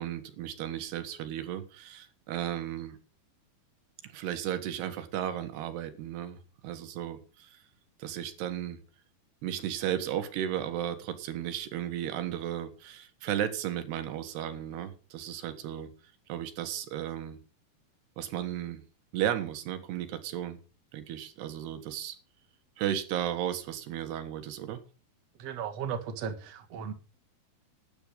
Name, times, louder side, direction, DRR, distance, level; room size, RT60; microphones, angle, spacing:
voice 1, 0.0-3.0 4.0-7.6 8.0-8.8 9.4-15.9 16.3-17.4 18.2-18.8 19.1-20.6 20.9-22.2 22.8-24.8, right 11 dB, 85° right, 3.5 m, -34 dB
voice 2, 25.4-26.9, right 7 dB, 50° right, 2.3 m, -36 dB
12.5 x 10.0 x 5.4 m
omnidirectional pair, 4.6 m